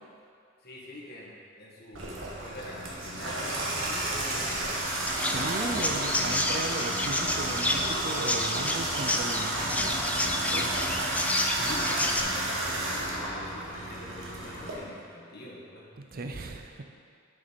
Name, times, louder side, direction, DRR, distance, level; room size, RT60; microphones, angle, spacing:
voice 1, 0.6-2.1 2.4-4.9 11.5-16.6, left 1 dB, 50° left, -4 dB, 1.7 m, -43 dB
Water tap faucet / Bathtub (filling or washing), 1.9-14.7, right 1 dB, 70° right, 1.4 m, -32 dB
Chirp tweet, 5.1-12.2, left 1 dB, 5° left, 0.4 m, -30 dB
voice 2, 5.3-11.0 11.3-11.7 16.1-16.8, right 2 dB, 45° right, 5 dB, 0.5 m, -37 dB
7.1 x 6.4 x 5.3 m, 2.3 s
head